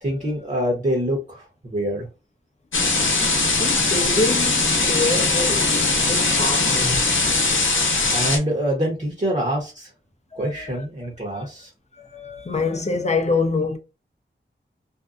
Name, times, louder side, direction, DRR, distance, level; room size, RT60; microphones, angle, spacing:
voice 1, 0.0-2.1 8.1-9.9 10.4-11.7, equal, 40° right, 1.0 m, -25 dB
sound 1, 2.7-8.4, left 3 dB, 85° left, 0.7 m, -20 dB
voice 2, 3.6-7.2 10.3-10.9 11.3-11.5 12.0-13.8, left 3 dB, 35° left, 0.6 m, -26 dB
2.6 x 2.2 x 2.4 m
wide cardioid pair, 65°, 20 cm